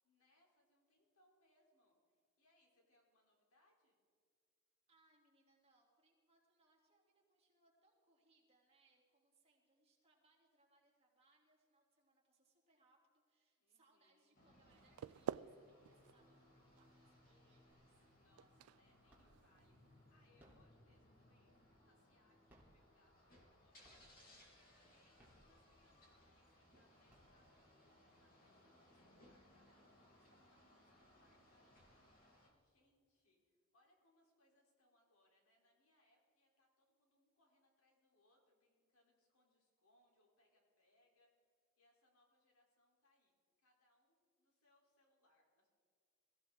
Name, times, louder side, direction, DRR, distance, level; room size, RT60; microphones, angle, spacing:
voice 1, 0.0-4.0 13.6-14.4 18.1-31.7 32.2-41.3 41.8-45.7, left 1 dB, 85° left, 0 dB, 3.8 m, -78 dB
voice 2, 4.9-18.1 19.1-19.3, right 2 dB, 30° right, -2 dB, 3.2 m, -76 dB
sound 1, 14.3-32.5, left 1 dB, 40° left, 3.4 m, -68 dB
sound 2, 14.7-20.6, right 9 dB, 80° right, 0.3 m, -51 dB
sound 3, 17.7-18.2 18.5-19.6 20.2-22.0 22.4-23.5 23.8-24.4 25.0-26.0 26.5-26.6 26.9-27.8, equal, 10° right, 3.4 m, -69 dB
22.5 x 15.0 x 3.8 m, 2.2 s
head